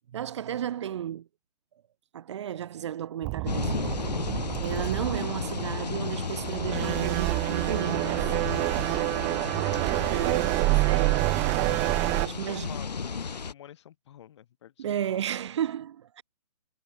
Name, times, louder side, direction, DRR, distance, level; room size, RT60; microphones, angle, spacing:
voice 1, 0.1-1.3 2.1-4.3 4.6-8.3 9.9-11.3 12.0-12.8 14.8-16.2, right 10 dB, 45° right, 1.3 m, -33 dB
sound 1, 3.2-12.3, right 27 dB, 10° right, 0.4 m, -28 dB
sound 2, 3.5-13.5, left 5 dB, 80° left, 2.5 m, -34 dB
voice 2, 9.0-10.3 12.1-15.2, left 11 dB, 45° left, 7.5 m, -49 dB
hypercardioid pair, 155°, 21 cm